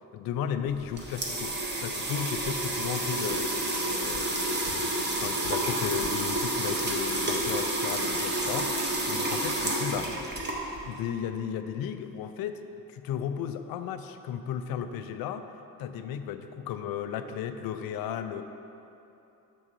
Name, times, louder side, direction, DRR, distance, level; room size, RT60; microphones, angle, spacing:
voice 1, 0.1-10.1 10.8-15.5 15.8-18.4, left 8 dB, 50° left, 9 dB, 0.5 m, -35 dB
sound 1, 0.7-11.0, right 1 dB, 20° right, 1.1 m, -30 dB
6.7 x 3.6 x 6.1 m, 2.8 s
figure-of-eight pair, 45°, 48 cm